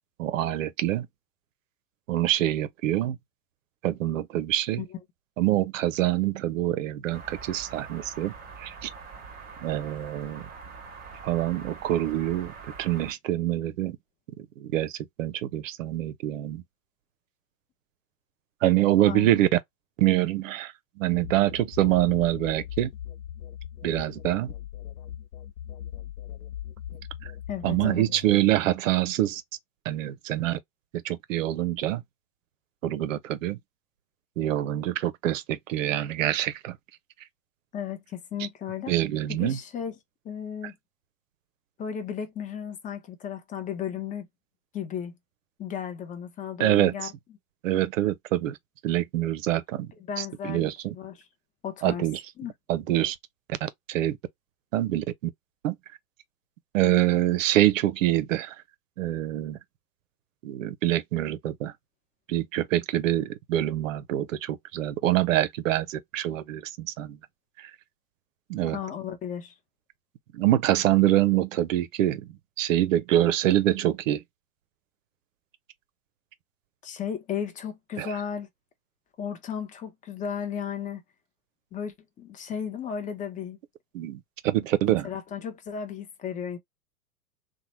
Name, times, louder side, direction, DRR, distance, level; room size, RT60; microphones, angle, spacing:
voice 1, 0.2-1.1 2.1-3.2 3.8-4.8 5.4-8.9 9.6-10.4 11.2-12.5 12.8-14.0 14.4-16.6 18.6-19.5 20.0-22.9 23.8-24.5 27.6-29.4 29.9-30.6 30.9-32.0 32.8-33.6 34.4-36.8 38.4-38.5 38.9-39.6 46.6-47.1 47.6-48.6 48.8-49.9 50.2-50.9 51.8-52.2 52.7-53.2 53.5-54.2 54.7-55.0 55.6-55.8 56.7-58.5 59.0-59.6 60.4-61.7 62.3-67.2 67.6-67.7 68.5-68.8 70.3-74.2 78.0-78.1 83.9-85.1, right 14 dB, 60° right, 0.6 m, -25 dB
sound 1, 7.1-13.1, right 5 dB, 20° right, 0.9 m, -44 dB
sound 2, 21.1-28.7, left 11 dB, 75° left, 0.6 m, -40 dB
voice 2, 27.5-28.1 37.7-38.9 39.3-39.9 40.2-40.7 41.8-44.3 44.7-45.1 45.6-47.1 50.1-50.7 50.9-51.1 51.6-52.0 52.4-52.5 68.7-69.5 76.8-78.5 79.2-81.0 81.7-83.6 84.8-86.6, left 8 dB, 15° left, 0.6 m, -34 dB
2.9 x 2.2 x 3.0 m
figure-of-eight pair, 95°, 45 cm